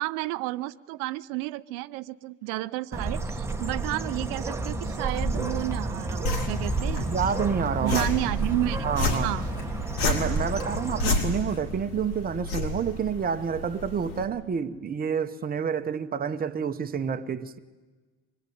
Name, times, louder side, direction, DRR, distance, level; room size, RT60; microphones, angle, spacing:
voice 1, 0.0-7.1 7.8-8.8 9.2-9.5, right 18 dB, 80° right, 0.7 m, -31 dB
Bird, 2.9-11.1, right 2 dB, 5° right, 1.3 m, -30 dB
sound 1, 6.2-14.2, left 2 dB, 75° left, 5.0 m, -31 dB
voice 2, 7.1-8.1 8.8-9.3 10.0-17.6, right 7 dB, 25° right, 1.0 m, -29 dB
25.0 x 20.5 x 9.3 m
cardioid pair, 125°, 39 cm